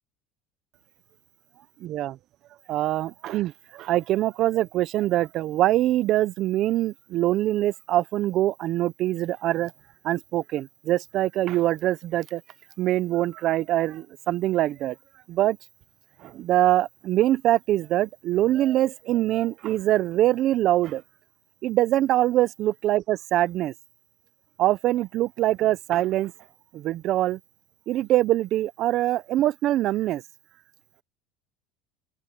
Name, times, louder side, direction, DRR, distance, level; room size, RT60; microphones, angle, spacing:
voice 1, 1.8-2.2 2.7-9.7 10.0-12.4 12.8-15.0 15.3-15.6 16.2-21.0 21.6-23.7 24.6-26.3 26.7-27.4 27.9-30.2, right 14 dB, 50° right, 0.6 m, -24 dB
open air
cardioid pair, 135°, 0 cm